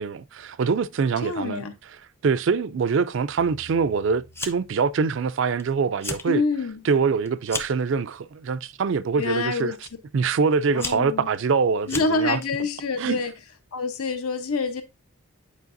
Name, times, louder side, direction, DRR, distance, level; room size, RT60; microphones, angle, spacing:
voice 1, 0.0-1.6 2.2-6.4 6.9-9.7 10.1-12.4 13.0-13.2, right 5 dB, 60° right, 0.4 m, -24 dB
voice 2, 1.2-1.7 6.3-6.8 9.2-9.8 10.7-11.3 11.9-13.3 13.7-14.8, left 3 dB, 90° left, 1.0 m, -26 dB
sound 1, 3.4-5.6, equal, 70° left, 2.2 m, -51 dB
Fire, 4.3-4.8 5.1-5.6 5.9-6.3 6.7-7.9 8.6-9.0 9.9-10.0 10.5-12.5, left 2 dB, 10° left, 0.4 m, -34 dB
8.3 x 4.6 x 2.6 m
head